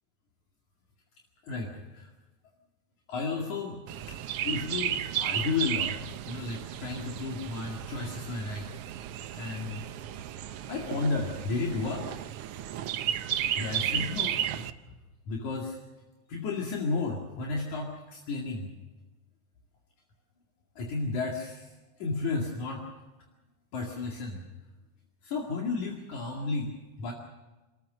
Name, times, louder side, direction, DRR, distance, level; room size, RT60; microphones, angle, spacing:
voice 1, 1.4-2.1 3.1-3.8 4.1-4.2 4.4-6.0 6.3-8.7 9.3-9.8 10.7-12.1 13.6-14.6 15.3-15.8 16.3-18.7 20.8-21.7 22.0-22.8 23.7-24.4 25.2-26.7 27.0-27.1, left 3 dB, 70° left, 0 dB, 3.6 m, -33 dB
Chirp tweet, 3.9-14.7, right 10 dB, 75° right, 1.3 m, -34 dB
27.5 x 14.0 x 7.6 m, 1.1 s
omnidirectional pair, 3.5 m